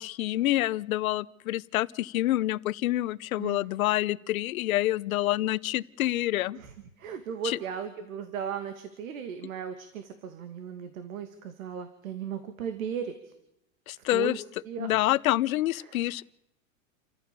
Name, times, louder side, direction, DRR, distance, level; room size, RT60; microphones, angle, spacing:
voice 1, 0.0-6.6 7.4-7.6 13.9-14.4 14.8-16.2, left 15 dB, 85° left, 18 dB, 0.9 m, -27 dB
voice 2, 6.5-13.3 14.0-15.0 15.8-16.0, right 7 dB, 80° right, 8 dB, 2.4 m, -37 dB
29.0 x 14.5 x 6.9 m, 0.85 s
supercardioid pair, 170°, 41 cm